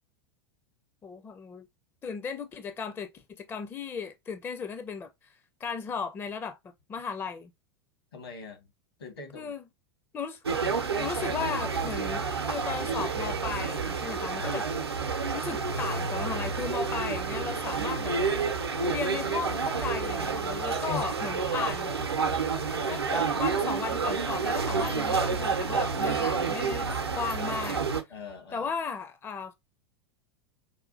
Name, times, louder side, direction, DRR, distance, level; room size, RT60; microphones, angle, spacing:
voice 1, 1.0-1.7 2.0-3.1 3.4-5.3 5.6-7.5 9.3-9.6 10.1-10.4 11.0-14.7 15.3-18.2 18.9-21.9 22.9-27.8 28.5-29.5, left 6 dB, 15° left, 0.4 m, -36 dB
voice 2, 8.1-8.7 9.0-9.5 20.9-21.4 28.1-28.7, left 6 dB, 70° left, 1.5 m, -41 dB
sound 1, 10.4-28.0, right 5 dB, 80° right, 0.7 m, -29 dB
4.8 x 2.4 x 2.6 m
figure-of-eight pair, 90°, 13 cm